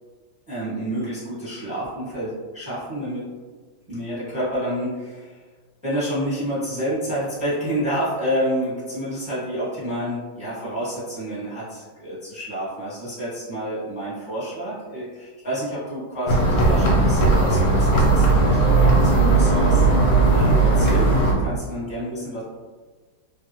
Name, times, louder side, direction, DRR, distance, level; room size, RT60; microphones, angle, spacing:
voice 1, 0.5-3.3 3.9-5.4 5.8-19.9 20.3-22.4, equal, 5° right, -10 dB, 0.8 m, -29 dB
sound 1, 16.3-21.3, right 3 dB, 60° left, 1.0 m, -17 dB
3.4 x 2.3 x 2.9 m, 1.4 s
omnidirectional pair, 2.2 m